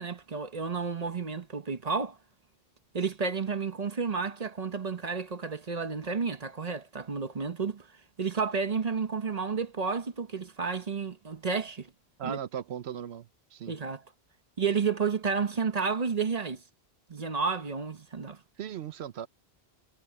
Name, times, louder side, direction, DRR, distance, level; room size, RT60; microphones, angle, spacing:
voice 1, 0.0-2.2 2.9-7.9 8.2-11.9 12.2-12.4 13.7-14.0 14.6-16.6 17.1-18.4, right 5 dB, 40° right, 1.0 m, -31 dB
voice 2, 12.2-13.7 18.6-19.3, right 9 dB, 80° right, 0.9 m, -38 dB
omnidirectional pair, 1.1 m